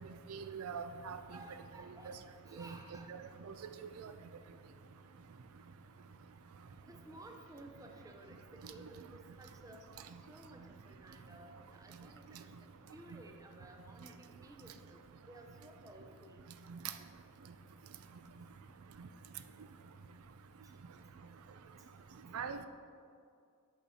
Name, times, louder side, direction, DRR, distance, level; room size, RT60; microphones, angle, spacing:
voice 1, 0.3-1.2 2.6-2.7 3.1-3.2 3.5-3.6 22.3-22.7, right 6 dB, 80° right, 9 dB, 0.4 m, -41 dB
voice 2, 1.3-2.2 2.4-3.1 6.8-9.8 10.3-12.5 12.9-15.0 15.3-16.4, right 1 dB, 15° right, 3 dB, 0.6 m, -55 dB
8.4 x 5.5 x 4.2 m, 2.3 s
head